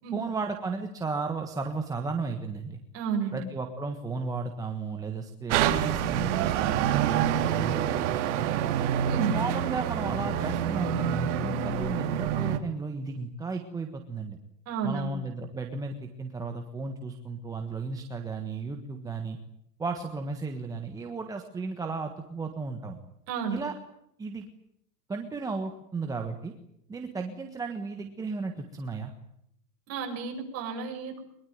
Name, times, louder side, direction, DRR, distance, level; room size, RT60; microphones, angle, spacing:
voice 1, 0.1-2.8 3.3-8.7 9.3-14.4 14.8-19.4 19.8-23.0 23.5-23.7 24.2-24.5 25.1-26.5 26.9-29.1, right 4 dB, 5° right, 4 dB, 1.4 m, -34 dB
voice 2, 2.9-3.4 9.0-9.3 14.7-15.2 23.3-23.6 29.9-31.2, right 6 dB, 30° right, 3 dB, 7.0 m, -32 dB
sound 1, 5.5-12.6, right 9 dB, 45° right, 2.7 m, -27 dB
23.0 x 22.5 x 9.5 m, 0.76 s
supercardioid pair, 160°, 49 cm